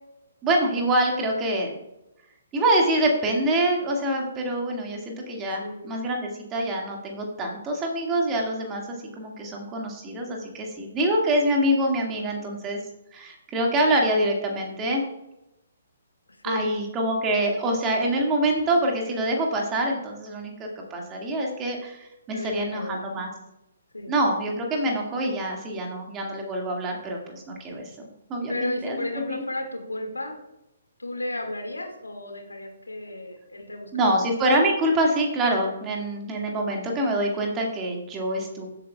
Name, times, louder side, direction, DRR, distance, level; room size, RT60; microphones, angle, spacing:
voice 1, 0.4-1.7 2.5-8.8 9.2-12.8 13.1-15.0 16.4-23.3 24.1-27.9 28.3-29.0 29.3-29.4 33.9-38.7, right 1 dB, 20° right, 0 dB, 2.0 m, -25 dB
voice 2, 5.6-6.0 12.2-12.6 16.4-16.7 22.3-23.1 23.9-24.1 28.5-30.4 31.0-34.1, left 1 dB, 80° left, 3 dB, 2.0 m, -33 dB
15.0 x 8.0 x 2.3 m, 0.89 s
figure-of-eight pair, 130°, 0 cm